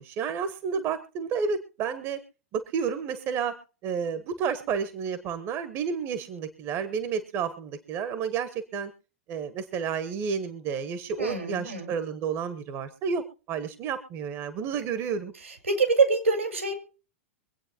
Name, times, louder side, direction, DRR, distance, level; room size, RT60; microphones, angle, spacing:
voice 1, 0.0-2.2 2.5-3.5 3.8-8.9 9.3-15.3, right 6 dB, 35° right, 11 dB, 1.3 m, -31 dB
voice 2, 11.2-11.9 15.4-16.7, right 4 dB, 80° right, 5 dB, 4.6 m, -25 dB
24.5 x 8.6 x 2.9 m, 0.37 s
figure-of-eight pair, 100°, 7 cm